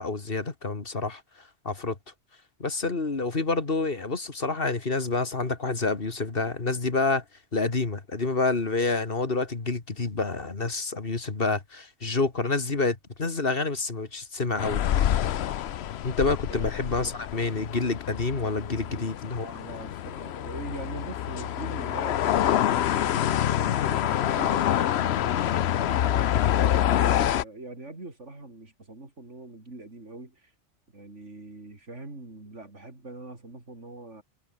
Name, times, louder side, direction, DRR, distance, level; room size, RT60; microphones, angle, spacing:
voice 1, 0.0-2.0 2.6-7.2 7.5-14.8 16.0-19.6, left 3 dB, 50° left, 2.3 m, -28 dB
sound 1, 14.6-27.4, left 11 dB, 70° left, 0.9 m, -26 dB
voice 2, 19.4-26.0 26.5-30.5 30.9-34.2, right 2 dB, 85° right, 4.9 m, -42 dB
omnidirectional pair, 1.2 m